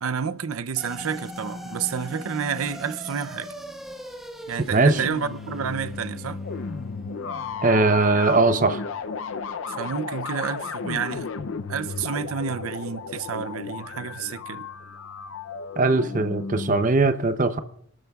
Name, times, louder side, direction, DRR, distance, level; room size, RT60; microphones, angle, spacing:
voice 1, 0.0-3.5 4.5-6.4 9.7-11.3 11.7-14.7, right 7 dB, 85° right, 0.6 m, -30 dB
sound 1, 0.8-9.3, equal, ahead, 1.4 m, -41 dB
sound 2, 4.8-16.8, left 5 dB, 70° left, 0.5 m, -34 dB
voice 2, 7.6-8.8 15.8-17.6, right 3 dB, 40° right, 0.6 m, -20 dB
29.0 x 12.5 x 2.3 m
head